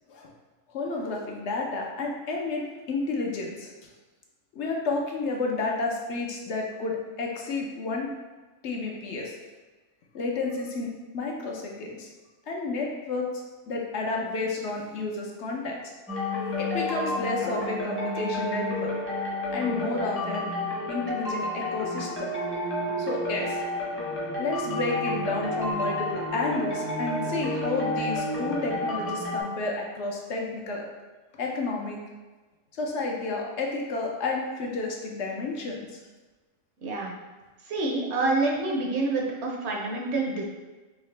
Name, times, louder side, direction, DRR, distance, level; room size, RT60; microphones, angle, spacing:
voice 1, 0.7-3.7 4.5-8.1 8.6-9.3 10.1-12.1 12.5-15.8 16.6-18.9 19.5-20.5 20.9-22.3 23.0-23.6 24.4-30.8 31.4-32.0 32.8-35.8, left 3 dB, 65° left, 0 dB, 0.9 m, -31 dB
sound 1, 16.1-29.4, left 1 dB, 15° left, 0.6 m, -30 dB
voice 2, 36.8-37.1 37.7-40.5, right 2 dB, 65° right, -1 dB, 0.9 m, -27 dB
3.9 x 2.8 x 3.2 m, 1.3 s
omnidirectional pair, 1.3 m